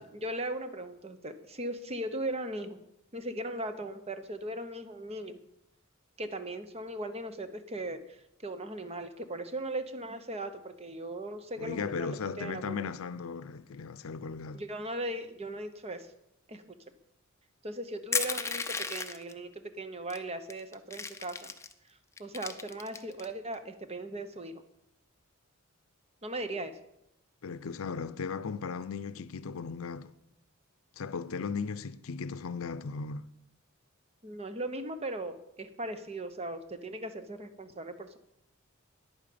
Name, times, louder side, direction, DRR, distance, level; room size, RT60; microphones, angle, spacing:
voice 1, 0.0-2.8 3.1-5.4 6.2-12.8 14.5-16.1 16.5-16.6 17.6-21.5 22.2-24.6 26.2-26.8 34.2-38.2, right 1 dB, 30° right, 0.9 m, -38 dB
voice 2, 11.6-14.6 27.4-30.1 31.0-33.3, left 5 dB, 80° left, 0.5 m, -36 dB
Crushing, 18.1-19.3 20.1-20.2 20.5-21.7 22.2-23.3, left 5 dB, 15° left, 0.6 m, -34 dB
10.5 x 8.9 x 6.8 m
head